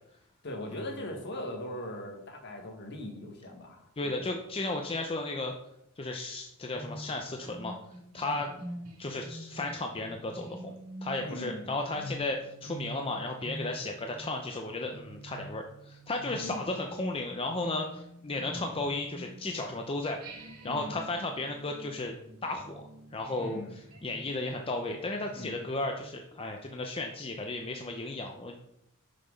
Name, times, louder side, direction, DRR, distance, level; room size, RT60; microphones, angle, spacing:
voice 1, 0.4-4.4 8.2-8.4 11.2-11.6 16.3-16.6 18.5-18.6 20.6-20.9 23.4-23.7 25.4-25.5, left 1 dB, 50° left, 3 dB, 1.6 m, -40 dB
voice 2, 4.0-5.5 6.0-7.7 8.1-8.5 9.0-10.7 11.0-20.4 20.6-22.1 22.4-22.8 23.1-28.6, left 2 dB, 25° left, 3 dB, 0.6 m, -34 dB
sound 1, 6.7-19.8 20.2-26.1, right 1 dB, 85° right, 2.4 m, -46 dB
6.7 x 5.9 x 5.3 m, 0.78 s
head